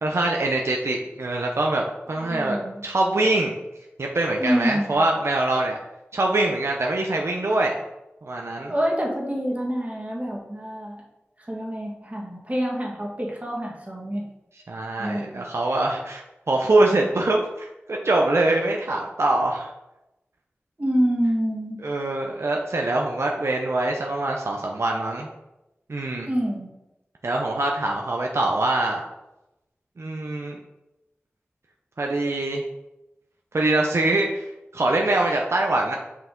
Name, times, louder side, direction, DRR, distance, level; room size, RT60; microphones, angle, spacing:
voice 1, 0.0-3.6 4.0-5.8 6.1-7.8 8.2-8.7 14.7-16.2 16.5-19.7 21.8-25.3 25.9-26.3 27.2-29.0 30.0-30.6 32.0-32.6 33.5-36.0, right 2 dB, 75° right, 0 dB, 0.6 m, -24 dB
voice 2, 2.2-2.8 4.4-4.9 8.7-11.0 11.5-14.2 15.0-15.5 20.8-21.8 26.2-26.7, equal, 30° right, -2 dB, 1.6 m, -26 dB
5.6 x 4.6 x 3.8 m, 0.94 s
wide cardioid pair, 40°, 5 cm